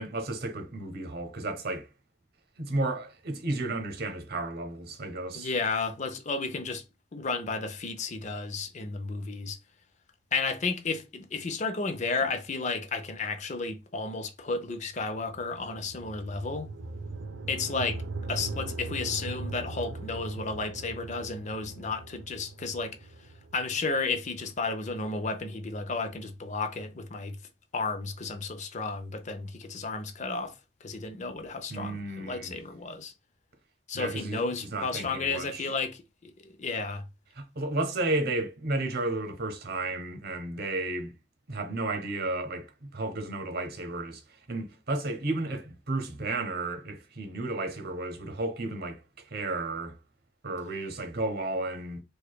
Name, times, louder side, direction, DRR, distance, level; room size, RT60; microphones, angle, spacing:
voice 1, 0.0-1.9 2.6-5.5 31.7-32.5 33.9-34.4 34.7-35.7 37.3-41.1 41.5-44.2 44.5-49.0 49.3-50.0 50.4-52.0, right 2 dB, 55° right, 0.9 m, -33 dB
voice 2, 5.3-6.8 7.1-9.6 10.3-16.7 17.5-18.0 18.3-23.0 23.5-27.4 27.7-30.5 30.8-33.1 33.9-36.3 36.6-37.1, left 4 dB, 40° left, 0.6 m, -32 dB
sound 1, 14.9-25.1, right 3 dB, 80° right, 0.5 m, -40 dB
4.7 x 2.3 x 2.3 m
head